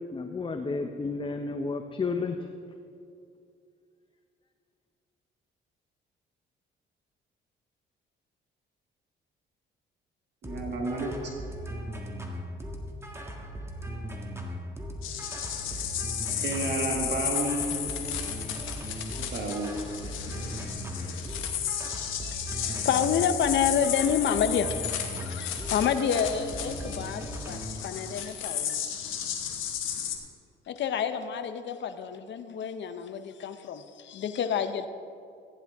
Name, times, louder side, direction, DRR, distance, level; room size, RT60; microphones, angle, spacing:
voice 1, 0.1-2.4, left 4 dB, 25° left, 5 dB, 0.7 m, -31 dB
sound 1, 10.4-27.8, equal, 15° right, 1.6 m, -38 dB
voice 2, 10.4-11.1 16.4-17.7 19.3-19.8, right 3 dB, 60° right, -1 dB, 1.9 m, -31 dB
sound 2, 15.0-30.2, left 9 dB, 90° left, 1.3 m, -34 dB
voice 3, 22.2-28.8 30.7-34.9, left 8 dB, 65° left, 10 dB, 0.8 m, -29 dB
15.0 x 10.0 x 3.5 m, 2.4 s
cardioid pair, 90°, 20 cm